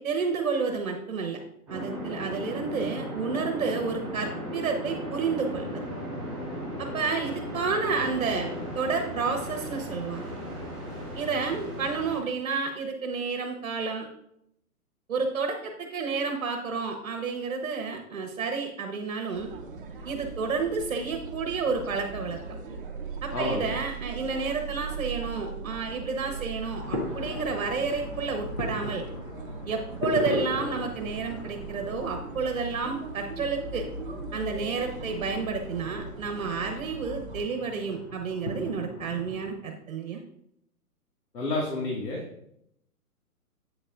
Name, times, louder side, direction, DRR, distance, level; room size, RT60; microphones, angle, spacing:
voice 1, 0.0-1.4 1.7-5.7 6.8-10.3 11.1-14.1 15.1-19.5 20.0-22.4 23.2-29.0 29.7-33.9 34.3-40.2, right 5 dB, 55° right, 4 dB, 1.1 m, -30 dB
sound 1, 1.7-12.2, equal, ahead, 2.8 m, -36 dB
sound 2, 19.3-37.4, right 3 dB, 35° right, 1.0 m, -39 dB
voice 2, 23.3-23.7 41.3-42.2, left 2 dB, 80° left, -2 dB, 2.1 m, -30 dB
sound 3, 26.7-39.5, left 2 dB, 25° left, 0.9 m, -38 dB
8.4 x 6.8 x 2.5 m, 0.75 s
hypercardioid pair, 170°, 46 cm